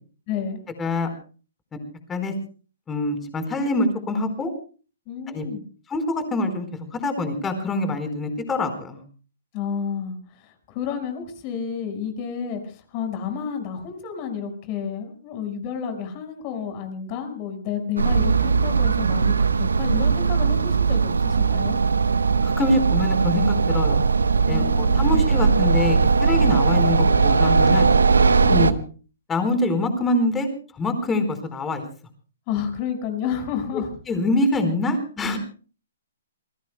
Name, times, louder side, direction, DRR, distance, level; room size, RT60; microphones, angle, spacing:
voice 1, 0.3-0.6 5.1-5.6 9.5-21.8 24.5-25.2 28.3-28.7 32.5-33.9, left 7 dB, 35° left, 6 dB, 5.2 m, -30 dB
voice 2, 2.9-4.5 5.3-5.4 5.9-6.7 6.9-9.0 22.4-24.0 24.5-27.9 28.5-28.7 29.3-30.5 30.7-31.8 34.1-35.4, left 2 dB, 15° left, 7 dB, 4.4 m, -25 dB
sound 1, 18.0-28.7, right 5 dB, 80° right, 1.0 m, -19 dB
28.5 x 21.0 x 2.2 m, 0.38 s
figure-of-eight pair, 125°, 0 cm